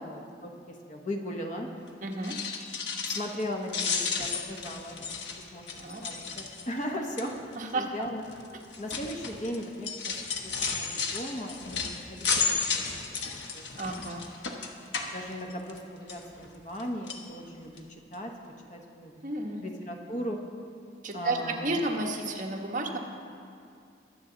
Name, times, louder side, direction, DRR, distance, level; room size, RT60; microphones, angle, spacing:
voice 1, 0.0-1.7 3.0-5.1 5.5-7.4 7.7-8.2 8.8-10.1 10.4-10.5 10.8-13.2 13.5-14.0 15.0-18.3 18.7-19.1 19.6-20.4 21.1-21.7, equal, 45° left, 2 dB, 1.2 m, -37 dB
voice 2, 2.0-2.3 5.8-6.0 7.5-7.9 8.5-8.6 13.8-14.2 19.2-19.6 21.0-23.0, right 2 dB, 45° right, 0 dB, 1.3 m, -32 dB
sound 1, 2.1-3.4 3.7-6.8 7.2-7.5 8.3-15.8 16.1-16.8 17.1-17.3 17.8-17.9 18.1-18.2, left 5 dB, 85° left, 1.2 m, -33 dB
22.5 x 7.9 x 4.0 m, 2.4 s
head